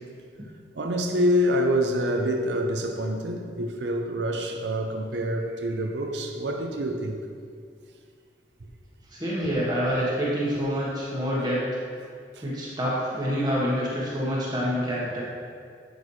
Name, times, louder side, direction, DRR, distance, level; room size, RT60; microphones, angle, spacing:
voice 1, 0.7-7.2 12.4-12.5, equal, 80° right, 4 dB, 0.7 m, -26 dB
voice 2, 9.1-11.6 12.4-15.2, equal, 25° right, -7 dB, 1.4 m, -27 dB
9.8 x 6.2 x 3.2 m, 2.2 s
head